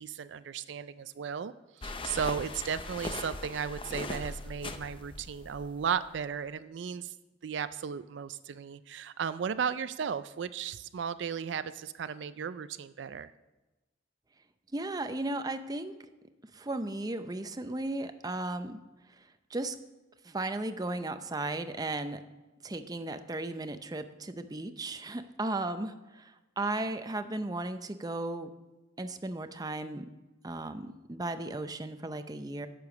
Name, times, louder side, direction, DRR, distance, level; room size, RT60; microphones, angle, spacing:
voice 1, 0.0-7.1 7.4-13.3, right 7 dB, 70° right, 13 dB, 0.4 m, -35 dB
sound 1, 1.8-6.2, left 2 dB, 30° left, 0.6 m, -40 dB
voice 2, 14.7-15.9 16.5-18.8 19.5-19.8 20.2-22.2 22.6-26.3 26.6-28.5 29.0-30.1 30.4-32.7, right 2 dB, 20° right, 9 dB, 0.6 m, -35 dB
10.5 x 6.9 x 7.1 m, 1.1 s
head